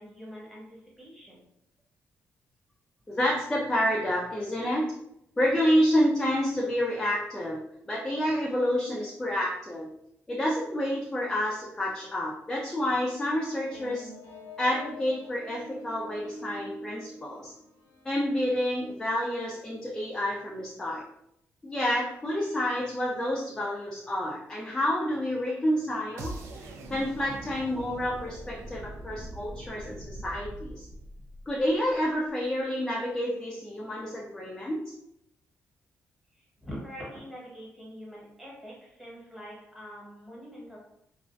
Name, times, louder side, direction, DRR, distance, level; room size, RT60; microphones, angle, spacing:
voice 1, 0.0-1.5 36.3-40.8, equal, 5° right, -5 dB, 1.1 m, -44 dB
voice 2, 3.1-4.9 5.4-7.6 7.9-9.9 10.3-14.1 14.6-17.5 18.1-21.0 21.6-30.9 31.5-34.8, equal, 10° left, -3 dB, 0.4 m, -29 dB
sound 1, 13.2-18.4, left 1 dB, 65° left, 0.6 m, -46 dB
sound 2, 26.2-32.1, right 1 dB, 75° right, 0.3 m, -42 dB
2.4 x 2.1 x 2.5 m, 0.76 s
cardioid pair, 115°, 5 cm